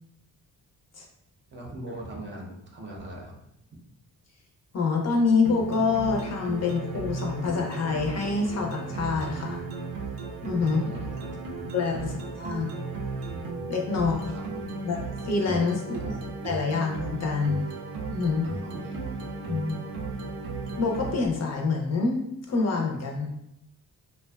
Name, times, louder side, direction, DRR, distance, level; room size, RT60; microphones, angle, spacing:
voice 1, 1.5-3.3 10.6-11.1 11.9-12.1 13.9-14.4 15.9-16.1 18.4-19.0, right 1 dB, 30° right, -1 dB, 0.6 m, -41 dB
voice 2, 4.7-9.6 10.4-10.8 11.7-12.7 13.7-14.3 14.8-15.0 15.2-16.2 16.4-17.6 18.1-18.5 19.5-19.7 20.8-22.2 22.5-23.3, left 4 dB, 45° left, 0 dB, 0.5 m, -26 dB
sound 1, 5.4-21.3, right 3 dB, 80° right, 0.6 m, -35 dB
2.5 x 2.2 x 2.2 m, 0.82 s
cardioid pair, 90°, 36 cm